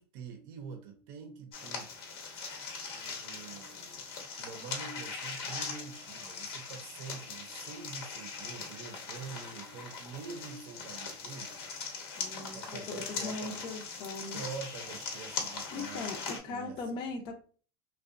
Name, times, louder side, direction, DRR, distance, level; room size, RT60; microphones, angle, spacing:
voice 1, 0.0-1.9 2.8-4.0 4.4-11.7 12.5-13.7 14.3-16.2 16.4-17.1, right 5 dB, 60° right, 0.5 m, -46 dB
sound 1, 1.5-16.4, left 5 dB, 80° left, 1.0 m, -41 dB
voice 2, 12.2-14.4 15.7-17.4, left 3 dB, 40° left, 0.5 m, -39 dB
2.7 x 2.1 x 2.4 m
supercardioid pair, 130°, 12 cm